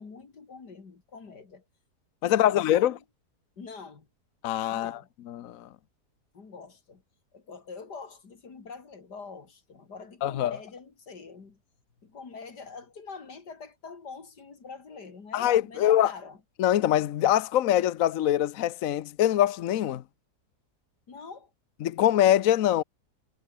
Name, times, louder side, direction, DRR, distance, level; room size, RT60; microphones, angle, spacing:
voice 1, 0.0-1.6 2.2-3.0 3.6-4.1 4.7-5.1 6.3-7.0 7.3-11.6 12.0-16.4 21.1-21.5, left 4 dB, 85° left, 3.4 m, -45 dB
voice 2, 2.2-2.9 4.4-5.0 5.3-5.7 10.2-10.6 15.3-16.1 16.6-20.0 21.8-22.8, left 12 dB, 65° left, 1.0 m, -23 dB
omnidirectional pair, 1.7 m